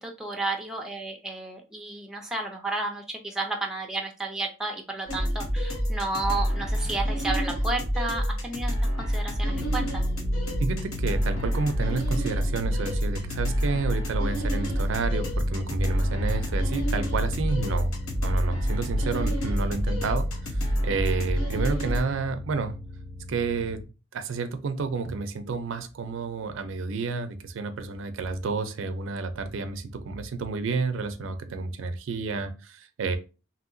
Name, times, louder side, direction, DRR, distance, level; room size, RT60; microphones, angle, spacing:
voice 1, 0.0-10.0, right 2 dB, ahead, 1 dB, 0.4 m, -32 dB
sound 1, 5.1-22.0, equal, 90° left, 1.0 m, -27 dB
sound 2, 9.5-23.8, left 2 dB, 70° left, 1.7 m, -38 dB
voice 2, 10.6-17.9 18.2-22.8 23.3-23.8 24.1-33.2, right 4 dB, 65° right, 9 dB, 0.4 m, -30 dB
2.9 x 2.7 x 2.5 m, 0.31 s
head